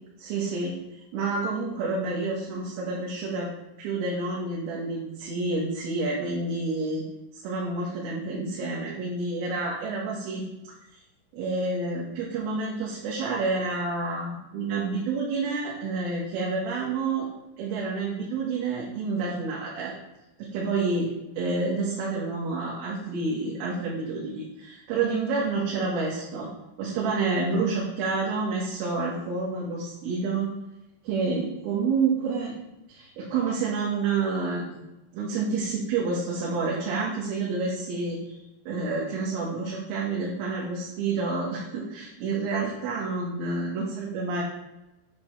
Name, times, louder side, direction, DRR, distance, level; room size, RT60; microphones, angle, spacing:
voice 1, 0.2-3.5 3.8-7.1 7.3-11.0 11.3-17.3 17.6-19.9 20.4-21.1 21.4-26.5 26.8-30.5 31.0-32.6 32.9-34.8 35.1-38.4 38.7-44.4, right 3 dB, 75° right, -5 dB, 4.2 m, -29 dB
8.6 x 8.1 x 3.3 m, 0.96 s
omnidirectional pair, 6.0 m